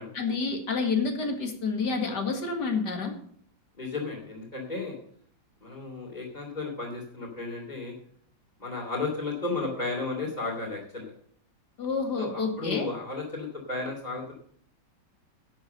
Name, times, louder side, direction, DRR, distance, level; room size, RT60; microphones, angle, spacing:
voice 1, 0.1-3.2 11.8-12.9, left 4 dB, 60° left, 4 dB, 2.6 m, -29 dB
voice 2, 3.8-4.9 5.6-7.9 8.6-11.1 12.2-14.3, left 3 dB, 20° left, -4 dB, 3.1 m, -33 dB
12.0 x 8.2 x 6.7 m, 0.63 s
omnidirectional pair, 2.0 m